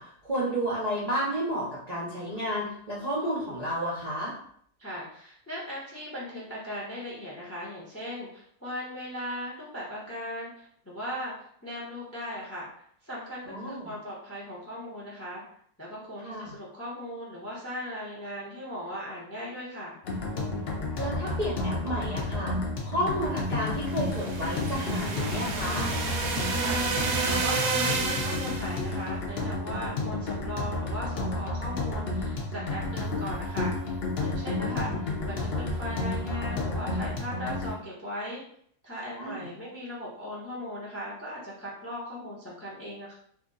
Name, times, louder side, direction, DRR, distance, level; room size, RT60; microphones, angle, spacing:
voice 1, 0.0-4.3 13.4-13.9 16.2-16.5 21.0-22.5 22.8-25.9 34.5-35.0 39.2-39.5, equal, 40° right, -8 dB, 0.5 m, -32 dB
voice 2, 4.8-15.4 15.8-20.0 26.5-38.4 38.8-43.1, equal, 20° left, -5 dB, 0.3 m, -38 dB
sound 1, 20.0-37.7, left 2 dB, 60° left, 0.6 m, -31 dB
sound 2, 23.9-28.8, right 4 dB, 65° right, 0.9 m, -30 dB
2.9 x 2.5 x 3.8 m, 0.64 s
omnidirectional pair, 1.9 m